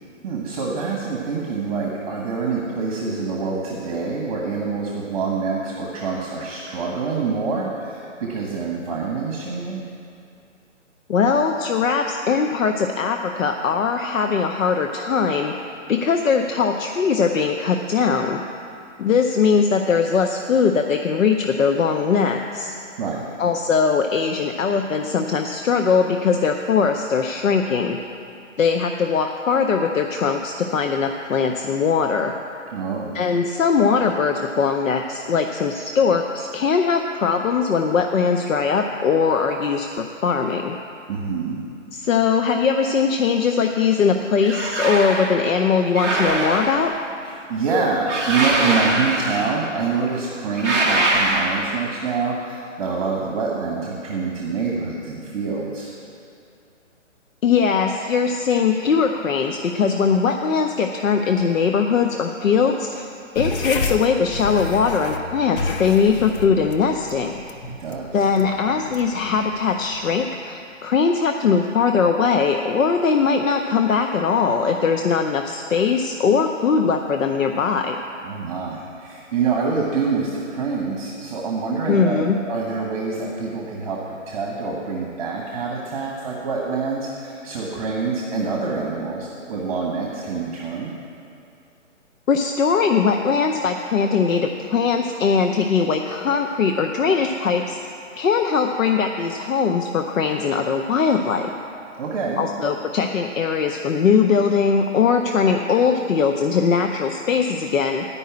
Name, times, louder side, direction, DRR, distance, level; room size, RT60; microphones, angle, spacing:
voice 1, 0.2-9.8 23.0-23.3 32.7-33.2 41.1-41.6 47.5-55.9 67.8-68.3 78.2-90.9 102.0-102.5, right 4 dB, 30° right, -2 dB, 1.1 m, -26 dB
voice 2, 11.1-15.5 15.9-18.4 19.0-22.7 23.4-28.0 28.6-32.3 33.1-40.8 41.9-46.9 57.4-63.1 63.3-67.4 68.1-78.0 81.9-82.4 92.3-101.5 102.4-108.0, left 5 dB, 85° left, 5 dB, 0.7 m, -20 dB
sound 1, 44.4-45.3 45.9-47.0 48.1-49.7 50.5-51.8, right 2 dB, ahead, 0.6 m, -23 dB
sound 2, 63.3-70.2, left 3 dB, 45° left, 0.7 m, -30 dB
10.0 x 5.5 x 8.3 m, 2.5 s
hypercardioid pair, 150°, 38 cm